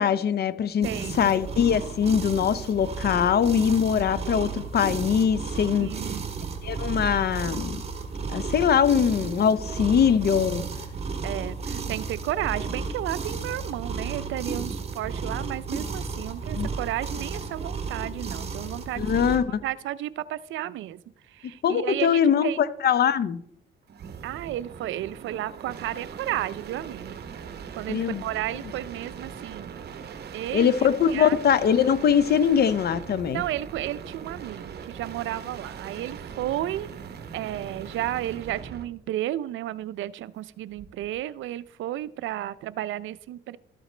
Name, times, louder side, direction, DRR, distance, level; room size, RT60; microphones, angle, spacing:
voice 1, 0.0-0.9 1.1-5.9 6.6-7.8 8.3-10.6 16.6-16.7 19.0-19.6 21.6-23.4 27.9-28.2 30.5-33.4, left 8 dB, 55° left, 15 dB, 0.6 m, -22 dB
sound 1, 0.8-19.4, right 4 dB, 30° right, 1.6 m, -33 dB
voice 2, 0.8-1.4 5.8-6.2 11.2-21.0 21.3-22.6 24.2-27.2 27.8-29.8 30.3-30.8 31.1-31.4 33.3-36.9 37.3-43.6, right 13 dB, 75° right, 17 dB, 0.4 m, -33 dB
sound 2, 23.9-38.9 40.7-41.2, right 7 dB, 55° right, 0.9 m, -40 dB
13.0 x 7.9 x 3.2 m, 0.71 s
cardioid pair, 90°, 20 cm